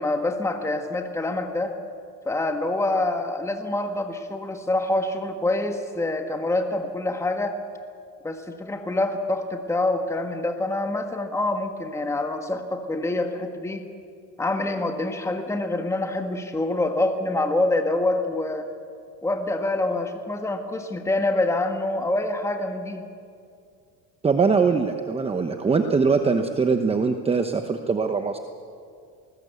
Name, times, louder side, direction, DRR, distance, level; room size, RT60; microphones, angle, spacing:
voice 1, 0.0-1.8 2.3-7.6 8.2-13.9 14.4-18.7 19.2-23.0, left 2 dB, 10° left, 5 dB, 1.6 m, -26 dB
voice 2, 24.2-28.4, right 5 dB, 15° right, 6 dB, 1.0 m, -22 dB
20.5 x 19.5 x 8.2 m, 2.3 s
cardioid pair, 130°, 34 cm